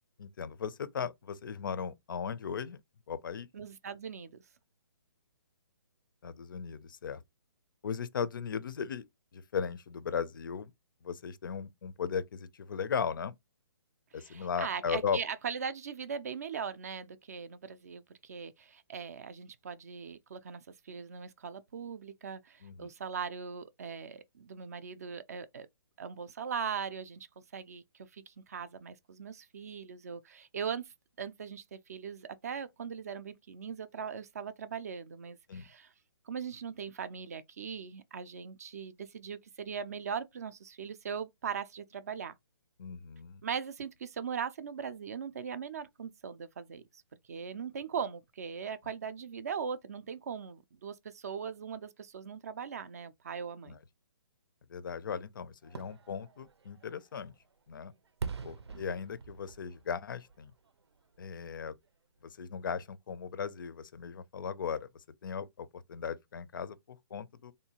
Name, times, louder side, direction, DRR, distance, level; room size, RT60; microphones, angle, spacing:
voice 1, 0.2-2.8 3.1-3.5 6.2-7.2 7.8-9.1 9.3-10.7 11.0-13.4 14.1-15.2 22.6-22.9 35.5-35.7 42.8-43.4 53.7-53.8 54.7-57.3 57.7-57.9 58.4-60.5 61.2-61.7 62.2-67.5, left 7 dB, 50° left, 0.4 m, -37 dB
voice 2, 3.5-4.4 14.2-25.7 26.0-30.8 31.2-35.9 36.3-42.3 43.4-47.0 47.3-53.8 58.7-59.0, right 6 dB, 35° right, 0.4 m, -40 dB
Fireworks, 55.6-61.4 61.8-61.9, right 5 dB, 85° right, 0.6 m, -45 dB
3.5 x 2.7 x 2.8 m
hypercardioid pair, 165°, 14 cm